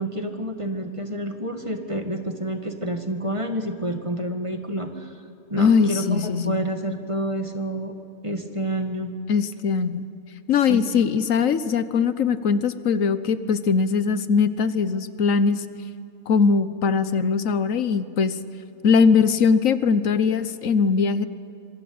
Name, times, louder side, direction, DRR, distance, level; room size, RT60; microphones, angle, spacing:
voice 1, 0.0-5.1 5.5-7.9 8.2-9.1 10.7-11.2, right 1 dB, 25° right, 6 dB, 1.8 m, -29 dB
voice 2, 5.6-6.6 9.3-10.0 10.5-15.6 16.3-18.4 18.8-21.3, left 5 dB, 80° left, 13 dB, 1.4 m, -21 dB
25.5 x 23.5 x 8.7 m, 2.6 s
omnidirectional pair, 1.4 m